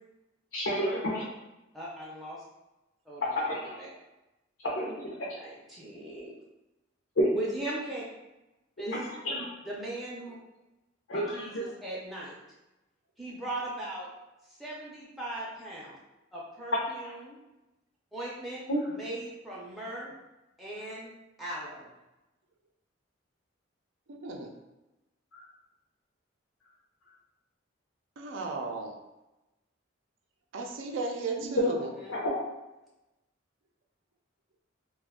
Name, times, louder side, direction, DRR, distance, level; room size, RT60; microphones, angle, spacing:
voice 1, 0.5-1.2 3.2-3.7 4.7-5.1 7.2-7.3 8.9-9.5 11.1-11.7 17.0-17.1 18.7-18.8 31.6-31.7 32.1-32.4, equal, 85° left, -6 dB, 0.6 m, -29 dB
voice 2, 1.7-2.4 3.1-3.3 3.8-3.9 5.3-6.3 7.3-8.0 8.8-8.9 9.7-10.4 11.1-12.3 13.2-14.1 14.6-15.9 16.3-17.4 18.1-18.6 18.9-20.1 20.6-21.1 21.4-21.9 32.0-32.2, right 1 dB, ahead, -6 dB, 0.4 m, -38 dB
voice 3, 24.1-24.5 28.2-28.9 30.5-31.9, right 3 dB, 75° right, 2 dB, 0.4 m, -35 dB
2.5 x 2.2 x 3.5 m, 1.0 s
head